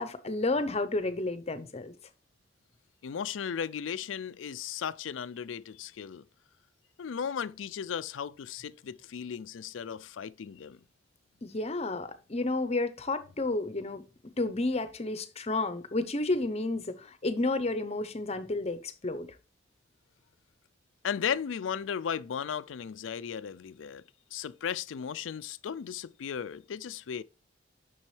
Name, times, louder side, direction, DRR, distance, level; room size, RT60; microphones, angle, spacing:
voice 1, 0.0-1.9 11.4-14.0 14.4-19.3, left 2 dB, 35° left, 0.8 m, -31 dB
voice 2, 3.0-6.2 7.0-10.8 21.0-24.0 24.3-27.2, left 7 dB, 90° left, 0.4 m, -36 dB
7.3 x 6.2 x 3.2 m
head